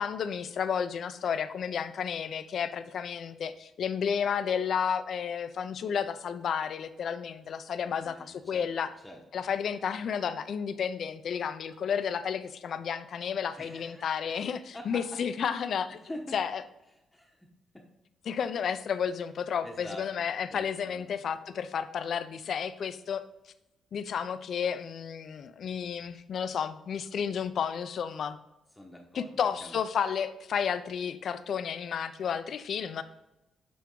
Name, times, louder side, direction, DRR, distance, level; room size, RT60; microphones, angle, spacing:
voice 1, 0.0-8.9 9.3-16.0 16.3-16.6 18.3-23.2 23.9-28.4 29.1-33.0, left 7 dB, 60° left, 12 dB, 0.5 m, -32 dB
voice 2, 7.8-8.7 9.0-9.2 13.6-14.0 14.7-15.2 16.0-16.3 17.1-17.9 19.6-20.1 20.5-21.0 28.8-29.8, equal, 10° left, 0 dB, 0.9 m, -45 dB
8.5 x 3.5 x 3.8 m, 0.93 s
cardioid pair, 110°, 0 cm